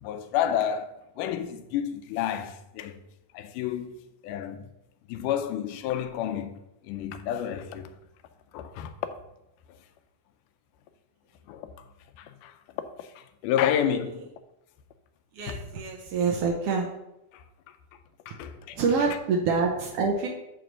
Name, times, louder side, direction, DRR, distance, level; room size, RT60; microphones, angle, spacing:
voice 1, 0.0-3.0 3.3-4.0 4.2-4.7 5.1-8.0 8.5-8.9 11.5-11.7 12.2-12.5 13.0-14.3 15.5-15.6 17.3-17.4 18.3-18.8, left 9 dB, 80° left, 2.2 m, -30 dB
voice 2, 15.3-16.9 18.7-20.3, right 4 dB, 80° right, 1.3 m, -26 dB
9.3 x 3.2 x 6.4 m
omnidirectional pair, 3.7 m